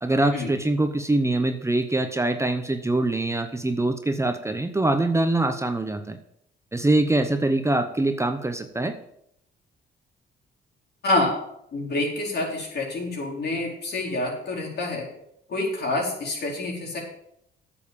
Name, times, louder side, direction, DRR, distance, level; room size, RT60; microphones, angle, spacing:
voice 1, 0.0-6.2 6.7-8.9, right 2 dB, 15° right, 7 dB, 0.9 m, -24 dB
voice 2, 11.7-15.1 15.5-17.0, left 2 dB, 55° left, -1 dB, 4.3 m, -27 dB
9.1 x 7.2 x 7.2 m, 0.75 s
cardioid pair, 90°, 20 cm